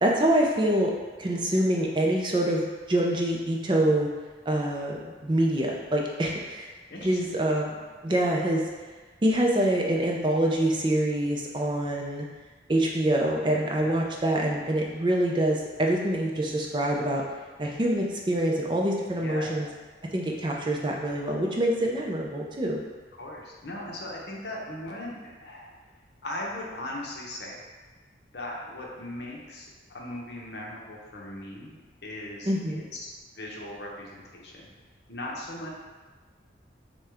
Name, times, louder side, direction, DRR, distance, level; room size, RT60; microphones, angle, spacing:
voice 1, 0.0-0.9 1.2-4.1 4.5-6.7 7.0-7.8 8.0-8.6 9.2-12.2 12.7-17.2 17.6-19.7 20.1-22.8 32.5-32.8, right 1 dB, 25° right, -1 dB, 0.4 m, -25 dB
voice 2, 19.2-19.7 23.2-25.7 26.2-27.6 28.3-33.1 33.4-34.7 35.1-35.7, left 1 dB, 65° left, -2 dB, 0.8 m, -38 dB
6.4 x 2.3 x 3.4 m, 1.4 s
head